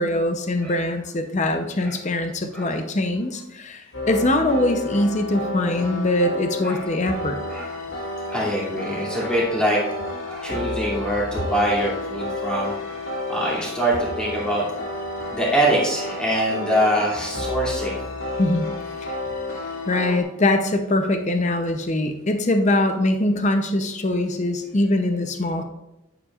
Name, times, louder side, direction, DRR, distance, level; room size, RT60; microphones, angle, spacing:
voice 1, 0.0-7.4 18.4-18.7 19.0-19.2 19.9-25.6, left 1 dB, 35° left, 6 dB, 0.7 m, -22 dB
sound 1, 3.9-20.2, left 2 dB, 75° left, 2.0 m, -31 dB
voice 2, 8.3-9.8 10.2-12.7 13.3-14.6 15.3-18.0, right 1 dB, 5° left, -6 dB, 2.5 m, -24 dB
10.0 x 9.0 x 2.4 m, 0.93 s
head